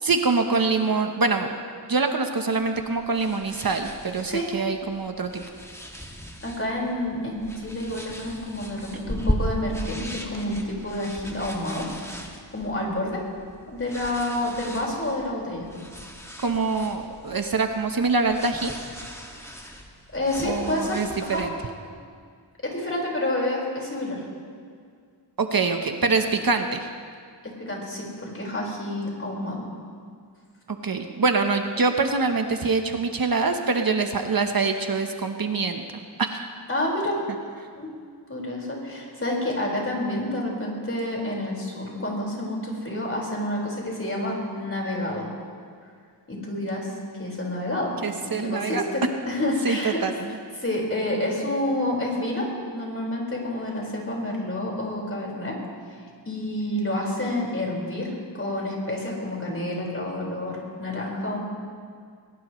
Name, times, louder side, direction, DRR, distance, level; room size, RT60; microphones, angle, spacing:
voice 1, 0.0-1.6 1.9-5.4 16.4-18.7 20.4-21.5 25.4-26.9 30.7-35.8 36.2-36.5 48.0-48.8 49.6-50.4, right 4 dB, 50° right, 5 dB, 1.1 m, -24 dB
sound 1, 2.6-21.5, equal, 5° left, 2.0 m, -37 dB
voice 2, 6.4-13.2 13.7-15.7 20.1-21.4 22.6-24.2 27.4-29.7 36.7-37.1 37.7-37.9 38.3-45.3 46.3-46.9 47.2-47.9 48.2-50.0 50.6-52.5 52.7-55.5 56.3-61.4, left 1 dB, 30° left, -3 dB, 5.0 m, -29 dB
21.5 x 19.5 x 3.2 m, 2.1 s
wide cardioid pair, 70°, 44 cm